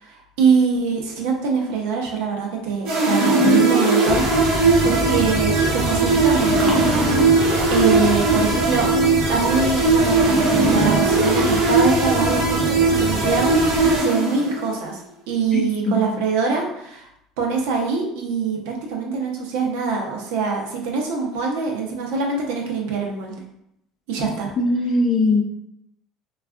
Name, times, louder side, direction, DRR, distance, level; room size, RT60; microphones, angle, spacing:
voice 1, 0.0-6.8 7.7-8.9 9.3-15.0 15.3-17.1 17.4-23.3 24.1-24.5, right 5 dB, 85° right, 0 dB, 0.7 m, -24 dB
sound 1, 2.8-14.7, right 2 dB, 65° right, 1.0 m, -19 dB
sound 2, 4.0-14.0, right 1 dB, 25° right, 0.9 m, -27 dB
voice 2, 15.5-16.0 24.6-25.4, left 2 dB, 30° left, 2 dB, 0.5 m, -20 dB
3.3 x 2.3 x 2.4 m, 0.79 s
cardioid pair, 125°, 0 cm